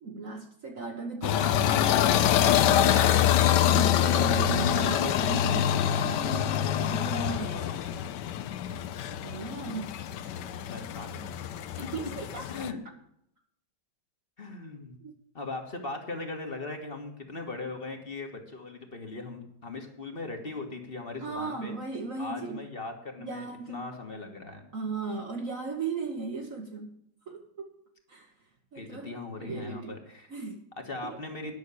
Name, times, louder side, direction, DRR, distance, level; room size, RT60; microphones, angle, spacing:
voice 1, 0.0-3.3 3.6-7.7 9.2-9.9 11.8-12.5 15.0-15.1 21.2-22.6 23.2-23.9 24.7-27.0 27.3-27.7 28.1-28.3 28.7-30.0 30.3-30.7 31.0-31.2, right 4 dB, 55° right, 1 dB, 1.4 m, -37 dB
sound 1, 1.2-12.7, left 10 dB, 80° left, 1.3 m, -25 dB
voice 2, 3.0-3.3 7.2-7.7 10.6-12.1 12.5-12.8 14.4-15.0 15.3-21.8 22.2-24.6 28.7-30.3 30.8-31.6, left 3 dB, 35° left, 4 dB, 1.6 m, -39 dB
10.5 x 6.2 x 8.2 m, 0.74 s
omnidirectional pair, 1.9 m